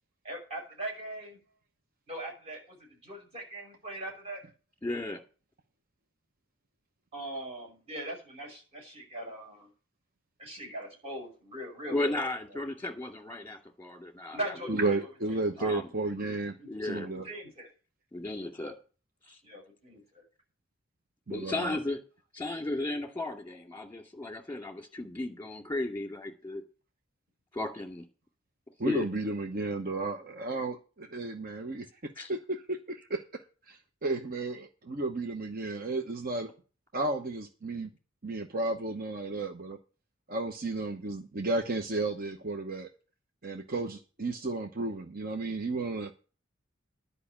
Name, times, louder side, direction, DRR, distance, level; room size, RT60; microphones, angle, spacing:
voice 1, 0.2-1.4 2.1-4.4 7.1-9.7 10.4-12.3 14.3-15.0 15.3-15.7 16.6-16.8 17.1-17.7 19.4-20.2, right 1 dB, 30° right, 0 dB, 5.9 m, -41 dB
voice 2, 4.8-5.2 11.9-14.5 15.6-15.9 16.2-16.3 16.7-17.1 18.1-18.7 19.3-19.4 21.3-22.0 22.3-26.6 27.5-28.1 28.8-29.1 32.2-32.3, left 2 dB, 10° left, 4 dB, 2.2 m, -35 dB
voice 3, 14.7-17.3 21.3-21.8 28.8-31.9 32.3-33.4 33.7-36.5 36.9-37.9 38.2-39.8 40.3-42.9 43.4-46.1, right 2 dB, 50° right, 5 dB, 1.0 m, -33 dB
11.0 x 5.5 x 8.8 m, 0.36 s
head